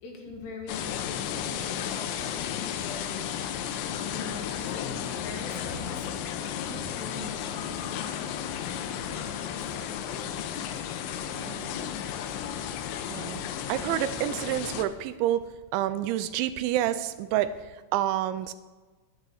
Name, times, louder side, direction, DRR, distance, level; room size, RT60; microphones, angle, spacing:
voice 1, 0.0-6.0 7.0-8.2 8.7-10.6, left 3 dB, 65° left, 2 dB, 3.4 m, -43 dB
sound 1, 0.7-14.8, left 9 dB, 85° left, 3.0 m, -33 dB
voice 2, 11.4-11.8 13.1-13.4 13.7-15.4 15.7-18.5, right 12 dB, 85° right, 12 dB, 2.8 m, -29 dB
9.9 x 8.2 x 7.8 m, 1.3 s
omnidirectional pair, 5.4 m